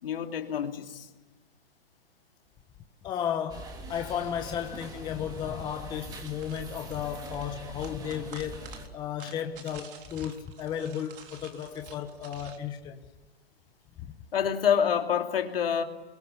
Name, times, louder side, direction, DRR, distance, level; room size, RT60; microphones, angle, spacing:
voice 1, 0.0-1.1 14.3-15.8, left 8 dB, 70° left, 2.9 m, -27 dB
voice 2, 3.0-8.6 8.9-13.1 14.0-14.1, left 9 dB, 15° left, 1.1 m, -34 dB
sound 1, 3.5-8.9, right 1 dB, 15° right, 2.4 m, -43 dB
sound 2, 6.1-12.6, right 7 dB, 60° right, 3.8 m, -50 dB
28.5 x 22.5 x 8.3 m
hypercardioid pair, 150°, 30 cm